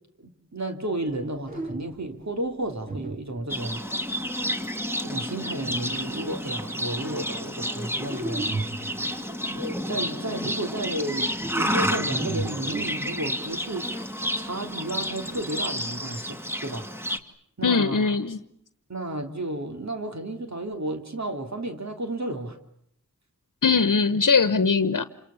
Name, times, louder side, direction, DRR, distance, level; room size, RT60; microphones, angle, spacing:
voice 1, 0.2-3.8 5.0-8.6 9.4-13.9 14.4-16.9 17.6-18.1 18.9-22.6, right 1 dB, 60° right, 3.2 m, -32 dB
sound 1, 1.1-1.2 1.5-2.1 2.8-3.7 5.6-6.1 8.1-9.2 11.3-13.4 14.9-15.4, right 2 dB, 25° right, 1.9 m, -34 dB
Livestock farm animals working animals, 3.5-17.2, equal, 5° right, 2.2 m, -30 dB
voice 2, 17.6-18.4 23.6-25.1, left 5 dB, 75° left, 1.1 m, -21 dB
29.0 x 27.0 x 7.1 m
wide cardioid pair, 55°, 31 cm